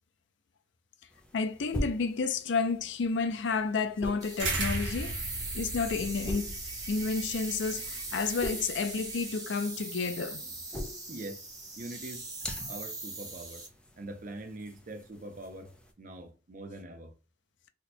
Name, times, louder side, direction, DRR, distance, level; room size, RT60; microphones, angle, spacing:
sound 1, 1.1-15.9, left 1 dB, 5° left, 0.4 m, -44 dB
voice 1, 1.3-5.2 5.5-6.6 6.9-10.4, left 4 dB, 70° left, 0.4 m, -31 dB
sound 2, 4.2-13.7, right 2 dB, 20° right, 1.1 m, -40 dB
sound 3, 4.4-9.3, right 2 dB, 80° right, 1.0 m, -37 dB
voice 2, 11.1-11.4 11.8-12.2 12.7-13.7 14.0-17.1, right 2 dB, 45° right, 0.6 m, -43 dB
2.8 x 2.2 x 4.1 m
head